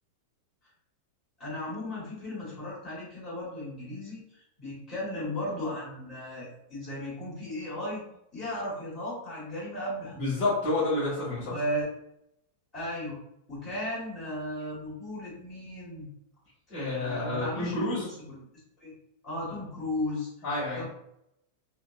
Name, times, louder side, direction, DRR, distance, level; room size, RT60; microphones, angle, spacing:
voice 1, 1.4-8.0 8.3-10.3 11.5-11.9 12.7-13.2 13.5-16.1 16.9-18.5 18.8-18.9 19.2-20.3 20.7-20.8, left 1 dB, 15° left, -9 dB, 1.5 m, -35 dB
voice 2, 10.1-11.6 16.7-18.1 20.4-20.8, left 2 dB, 35° left, -7 dB, 1.2 m, -29 dB
2.7 x 2.1 x 2.3 m, 0.79 s
supercardioid pair, 155°, 0 cm